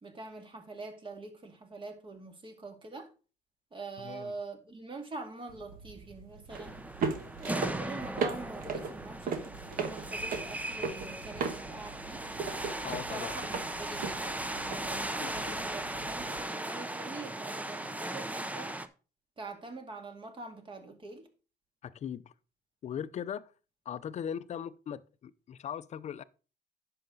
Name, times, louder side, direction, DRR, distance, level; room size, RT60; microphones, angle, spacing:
voice 1, 0.0-3.1 3.7-6.8 7.4-12.2 12.8-14.4 14.8-18.8 19.4-21.3, right 3 dB, 30° right, 2.2 m, -44 dB
voice 2, 4.0-4.3 12.8-13.4 15.2-15.6 21.8-22.3 22.8-23.5 23.9-26.2, left 8 dB, 40° left, 0.6 m, -39 dB
sound 1, 5.5-16.4, right 5 dB, 55° right, 1.4 m, -38 dB
sound 2, 6.5-18.9, right 1 dB, 10° right, 0.7 m, -38 dB
10.5 x 6.7 x 3.9 m
cardioid pair, 110°, 17 cm